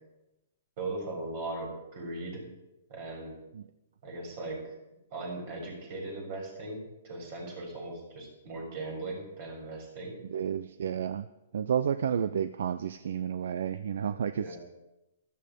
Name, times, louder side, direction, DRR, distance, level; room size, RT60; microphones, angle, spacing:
voice 1, 0.8-2.5 2.9-3.4 4.0-4.6 5.1-10.2 14.1-14.6, right 2 dB, 50° right, 1 dB, 6.8 m, -39 dB
voice 2, 10.3-11.3 11.5-14.6, right 8 dB, 75° right, 14 dB, 0.6 m, -31 dB
13.5 x 13.0 x 5.3 m, 0.94 s
hypercardioid pair, 140°, 0 cm